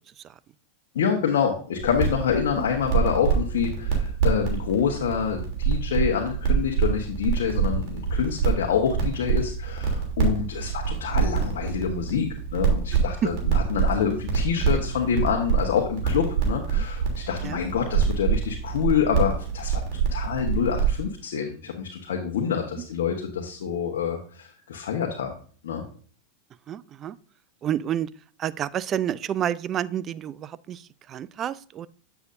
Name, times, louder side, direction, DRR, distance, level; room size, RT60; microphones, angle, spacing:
voice 1, 0.9-25.3 25.6-25.9, left 7 dB, 80° left, 1 dB, 1.2 m, -27 dB
sound 1, 1.8-21.0, right 6 dB, 55° right, 3.0 m, -26 dB
voice 2, 26.7-27.2 27.6-28.1 28.4-31.9, right 10 dB, 35° right, 18 dB, 0.4 m, -29 dB
8.2 x 6.9 x 2.6 m, 0.43 s
hypercardioid pair, 110°, 0 cm